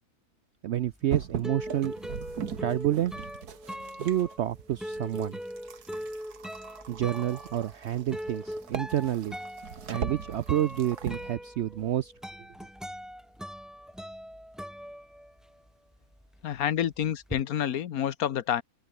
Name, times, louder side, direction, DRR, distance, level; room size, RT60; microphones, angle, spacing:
voice 1, 0.6-1.9 2.6-3.1 4.0-5.4 6.9-9.3 9.9-12.1, right 12 dB, 70° right, 0.6 m, -29 dB
sound 1, 0.9-15.7 16.0-17.4, equal, ahead, 2.2 m, -41 dB
sound 2, 1.1-4.4 4.8-11.3, right 7 dB, 90° right, 2.1 m, -39 dB
voice 2, 16.4-18.6, left 10 dB, 70° left, 1.4 m, -28 dB
open air
omnidirectional pair, 1.6 m